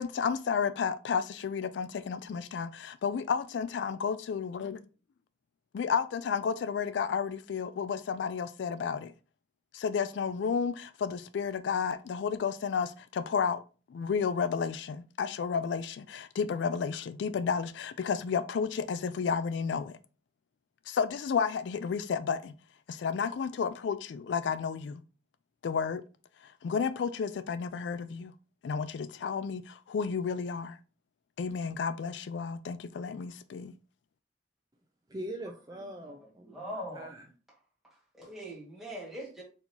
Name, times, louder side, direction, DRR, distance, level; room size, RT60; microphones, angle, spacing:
voice 1, 0.0-4.8 5.7-9.1 9.7-13.6 13.9-20.0 20.9-22.5 22.9-25.0 25.6-26.0 26.4-28.3 28.6-30.8 31.4-33.7, left 6 dB, 80° left, 0.3 m, -32 dB
voice 2, 35.1-37.3, right 1 dB, 20° right, 0.4 m, -42 dB
voice 3, 36.4-37.1 37.8-39.4, equal, ahead, 1.7 m, -41 dB
4.4 x 4.0 x 2.8 m
head